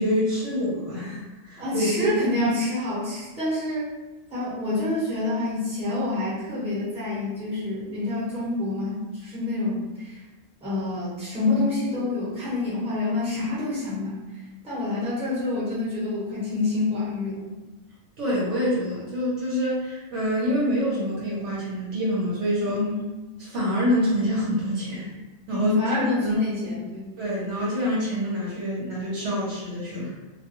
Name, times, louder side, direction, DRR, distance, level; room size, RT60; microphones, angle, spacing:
voice 1, 0.0-2.1 18.2-22.9 23.4-25.1 25.5-26.4 27.2-30.1, equal, 65° right, -6 dB, 0.9 m, -26 dB
voice 2, 1.6-3.9 4.3-10.2 10.6-17.6 22.7-23.1 25.5-27.1, left 2 dB, 5° right, -10 dB, 1.0 m, -27 dB
2.4 x 2.2 x 2.9 m, 1.1 s
omnidirectional pair, 1.4 m